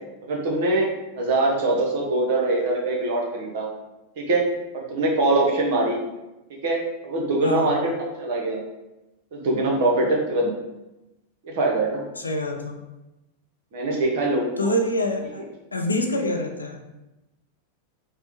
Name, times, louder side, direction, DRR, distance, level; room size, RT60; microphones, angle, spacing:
voice 1, 0.2-0.9 1.2-3.7 4.2-4.4 4.7-6.0 6.6-7.9 8.2-8.6 9.3-10.5 11.4-12.0 13.7-14.7, right 2 dB, 50° right, -1 dB, 0.7 m, -23 dB
voice 2, 7.4-7.8 12.2-12.8 14.6-15.5 15.7-16.8, left 1 dB, 80° left, 3 dB, 0.4 m, -26 dB
3.5 x 2.0 x 3.0 m, 0.97 s
figure-of-eight pair, 90°, 0 cm